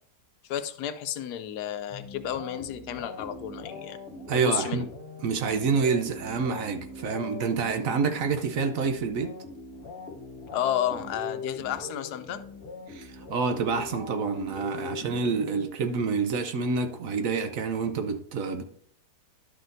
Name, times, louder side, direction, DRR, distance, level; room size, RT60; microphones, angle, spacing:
voice 1, 0.4-4.0 4.3-4.9 7.8-8.0 10.5-12.4, left 10 dB, 80° left, 1.2 m, -32 dB
sound 1, 1.9-16.2, left 3 dB, 40° left, 1.1 m, -41 dB
voice 2, 4.3-4.8 5.2-9.3 12.9-18.6, right 5 dB, 65° right, 1.0 m, -28 dB
11.5 x 6.1 x 2.6 m
omnidirectional pair, 1.7 m